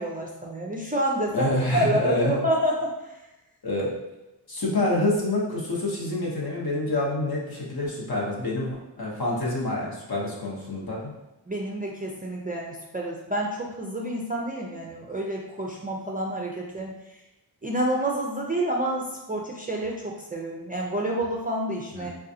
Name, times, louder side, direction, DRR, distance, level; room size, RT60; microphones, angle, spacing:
voice 1, 0.0-2.9 11.5-16.9 17.6-22.1, right 1 dB, 20° right, -2 dB, 0.4 m, -28 dB
voice 2, 1.3-2.4 3.6-3.9 4.5-11.1 21.9-22.1, left 2 dB, 55° left, -4 dB, 0.9 m, -27 dB
3.8 x 2.3 x 2.6 m, 1.0 s
wide cardioid pair, 105°, 43 cm